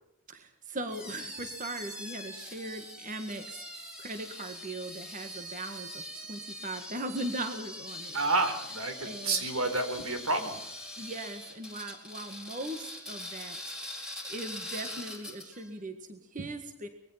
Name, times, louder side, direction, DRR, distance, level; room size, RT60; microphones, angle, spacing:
voice 1, 0.3-3.6 4.0-8.2 9.0-9.4 11.0-13.8 14.2-16.9, right 2 dB, 35° right, 7 dB, 1.7 m, -39 dB
sound 1, 0.9-15.7, left 1 dB, 5° right, 4.2 m, -43 dB
voice 2, 8.1-10.6, right 2 dB, 85° right, 7 dB, 4.4 m, -29 dB
25.0 x 21.0 x 5.8 m, 0.83 s
head